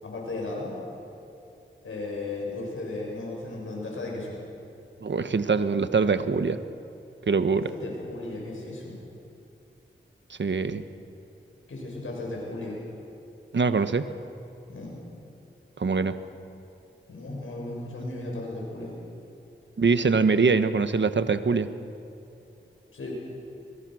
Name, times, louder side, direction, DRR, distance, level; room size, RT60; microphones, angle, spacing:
voice 1, 0.0-0.8 1.8-4.4 7.7-9.0 11.7-12.8 14.7-15.0 17.1-19.0 22.9-23.1, left 2 dB, 85° left, -2 dB, 6.6 m, -35 dB
voice 2, 5.0-6.6 7.3-7.7 10.3-10.9 13.5-14.1 15.8-16.2 19.8-21.7, right 4 dB, 65° right, 11 dB, 1.2 m, -23 dB
24.5 x 22.0 x 6.3 m, 2.8 s
cardioid pair, 40°, 21 cm